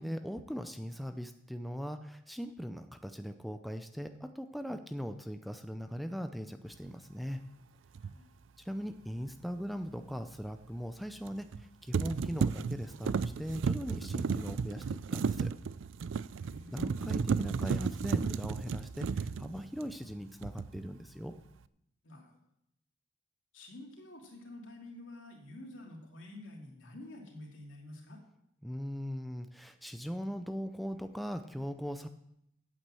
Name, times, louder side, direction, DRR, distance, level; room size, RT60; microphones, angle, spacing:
voice 1, 0.0-7.4 8.6-15.5 16.7-21.3 28.6-32.1, equal, ahead, 7 dB, 0.5 m, -40 dB
sound 1, 8.0-8.1 11.3-11.6 11.9-20.1 20.4-20.9, right 5 dB, 80° right, 0.4 m, -33 dB
voice 2, 16.4-16.9 22.0-22.3 23.5-28.2, left 1 dB, 85° left, 0 dB, 2.8 m, -49 dB
8.7 x 8.4 x 7.6 m, 0.80 s
head